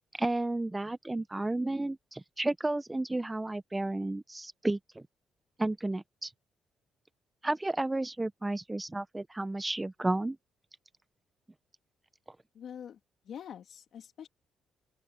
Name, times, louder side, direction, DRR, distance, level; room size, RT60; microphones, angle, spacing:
voice 1, 0.2-5.1 5.6-6.3 7.4-10.4, right 2 dB, 15° right, 1.1 m, -32 dB
voice 2, 12.5-13.0 13.2-14.3, left 8 dB, 65° left, 3.3 m, -45 dB
open air
cardioid pair, 90°, 0 cm